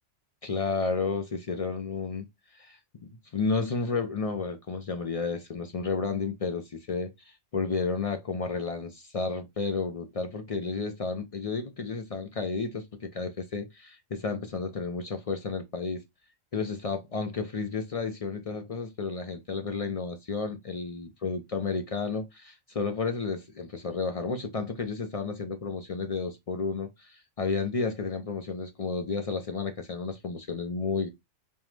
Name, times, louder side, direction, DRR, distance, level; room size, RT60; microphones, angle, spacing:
voice 1, 0.4-2.2 2.5-16.0 16.5-31.1, left 4 dB, 55° left, 0.4 m, -32 dB
5.3 x 2.1 x 3.1 m
omnidirectional pair, 1.2 m